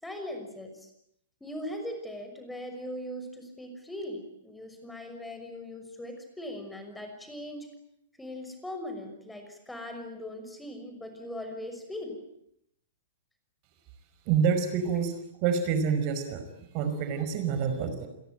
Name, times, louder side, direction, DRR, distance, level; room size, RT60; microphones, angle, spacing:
voice 1, 0.0-0.9 1.4-7.7 8.2-12.2, left 1 dB, 5° left, 6 dB, 6.0 m, -40 dB
voice 2, 14.3-15.1 15.4-16.4 16.7-18.1, right 6 dB, 40° right, 8 dB, 5.3 m, -27 dB
29.0 x 22.0 x 9.2 m, 0.75 s
figure-of-eight pair, 110°, 0 cm